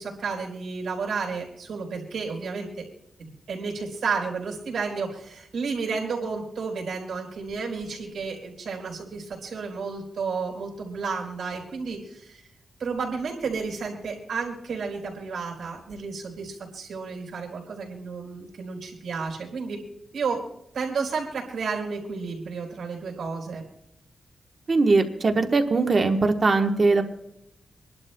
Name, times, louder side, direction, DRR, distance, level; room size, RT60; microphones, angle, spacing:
voice 1, 0.0-2.9 3.2-12.4 12.8-19.8 20.1-20.4 20.7-23.6, right 5 dB, 75° right, -1 dB, 3.9 m, -32 dB
voice 2, 24.7-27.0, right 3 dB, 35° right, 5 dB, 1.1 m, -21 dB
27.0 x 11.5 x 2.2 m, 0.79 s
wide cardioid pair, 170°, 0 cm